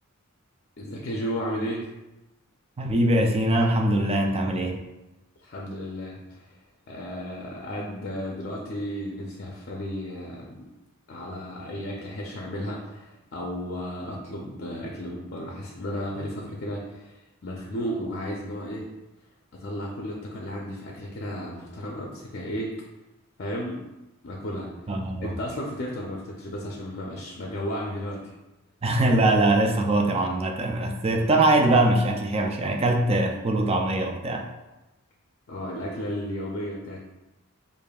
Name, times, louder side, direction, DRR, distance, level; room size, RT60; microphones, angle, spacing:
voice 1, 0.8-1.9 5.4-6.6 6.9-10.7 11.1-18.9 19.6-22.7 23.4-23.8 24.2-24.7 25.2-28.3 35.5-37.1, equal, 50° left, -2 dB, 0.4 m, -34 dB
voice 2, 2.8-4.8 24.9-25.4 28.8-34.5, right 1 dB, 25° right, 3 dB, 0.3 m, -22 dB
4.9 x 2.5 x 2.3 m, 1.0 s
head